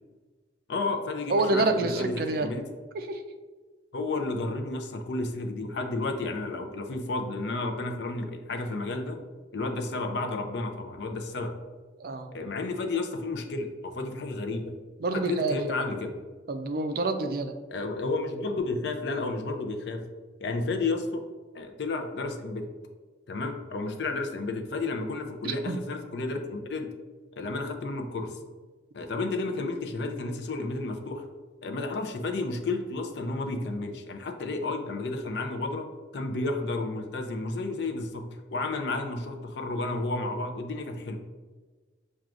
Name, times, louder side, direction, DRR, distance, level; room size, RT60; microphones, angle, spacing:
voice 1, 0.7-2.6 3.9-9.2 9.5-11.5 12.3-14.7 15.1-16.1 17.7-20.0 20.4-21.2 21.5-22.7 23.3-26.9 27.4-28.4 28.9-31.2 31.6-35.9 36.1-38.3 38.5-41.2, left 3 dB, 70° left, 5 dB, 0.5 m, -32 dB
voice 2, 1.3-2.5 2.9-3.2 12.0-12.3 15.0-15.6 16.5-17.5 25.4-25.8, right 2 dB, 55° right, 8 dB, 0.3 m, -27 dB
5.9 x 2.3 x 2.4 m, 1.4 s
head